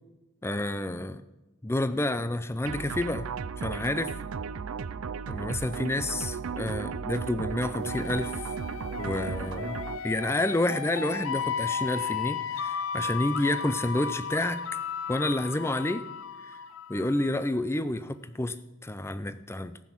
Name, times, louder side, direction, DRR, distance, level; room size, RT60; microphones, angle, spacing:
voice 1, 0.4-1.2 1.6-3.3 3.6-4.2 5.3-8.3 9.0-9.8 10.0-14.6 15.1-16.1 16.9-19.8, left 1 dB, 10° left, 0.4 m, -29 dB
sound 1, 2.6-10.0, right 6 dB, 70° right, 0.4 m, -35 dB
sound 2, 7.8-17.5, left 6 dB, 65° left, 0.6 m, -35 dB
14.5 x 6.1 x 7.3 m
head